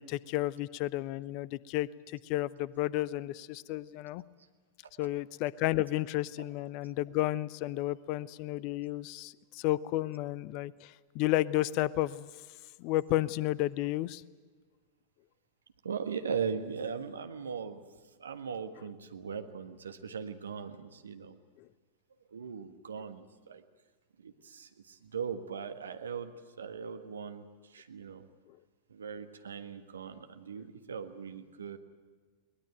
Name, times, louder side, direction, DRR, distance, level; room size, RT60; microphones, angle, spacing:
voice 1, 0.0-4.2 5.0-12.3 12.8-14.2, left 16 dB, 45° left, 22 dB, 0.6 m, -32 dB
voice 2, 15.8-17.8 18.2-21.4 22.3-23.6 24.2-28.3 28.9-31.8, right 6 dB, 70° right, 8 dB, 1.5 m, -39 dB
21.5 x 20.0 x 9.1 m, 1.4 s
figure-of-eight pair, 90°, 0 cm